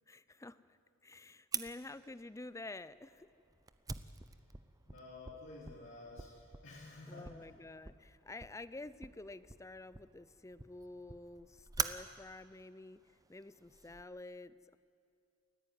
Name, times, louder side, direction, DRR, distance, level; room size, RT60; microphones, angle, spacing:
voice 1, 0.1-3.3 7.1-13.0 13.3-14.8, left 2 dB, 15° left, 16 dB, 0.5 m, -49 dB
Fire, 1.5-14.0, right 5 dB, 15° right, 0.7 m, -46 dB
voice 2, 4.9-7.5, left 2 dB, 65° left, -5 dB, 3.8 m, -51 dB
29.0 x 14.0 x 9.5 m, 2.5 s
head